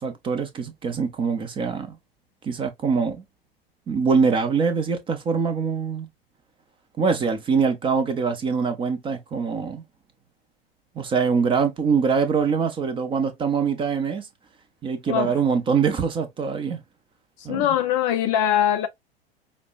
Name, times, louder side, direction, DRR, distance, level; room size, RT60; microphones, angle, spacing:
voice 1, 0.0-2.0 2.4-3.2 3.9-6.1 7.0-9.8 11.0-14.3 14.8-16.8 17.4-17.7, right 5 dB, 15° right, 0.6 m, -23 dB
voice 2, 17.4-18.9, left 10 dB, 30° left, 0.4 m, -22 dB
5.1 x 2.1 x 2.4 m
figure-of-eight pair, 90°, 30 cm